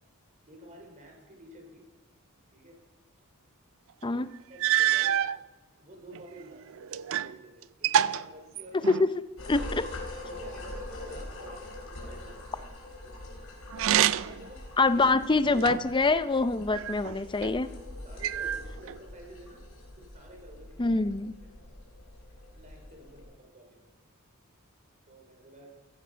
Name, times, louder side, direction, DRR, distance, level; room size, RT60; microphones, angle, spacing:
voice 1, 0.5-1.9 2.5-2.8 4.5-5.2 5.8-8.9 10.2-12.7 13.0-13.1 13.9-14.7 14.9-15.0 16.7-16.9 17.3-19.6 20.0-21.0 21.4-21.5 22.5-23.9 25.1-25.8, right 1 dB, 35° right, 1 dB, 4.6 m, -51 dB
sound 1, 4.0-4.1 4.6-5.4 6.1-7.4 7.6-9.2 13.7-14.5 15.0-16.0 16.7-17.5 18.2-19.0, right 10 dB, 65° right, 0.4 m, -27 dB
voice 2, 8.7-9.1 9.5-9.9 14.8-17.7 20.8-21.3, left 3 dB, 20° left, 13 dB, 0.5 m, -25 dB
sound 2, 9.4-23.2, left 1 dB, 75° left, 4.2 m, -43 dB
15.5 x 15.0 x 5.7 m, 1.1 s
head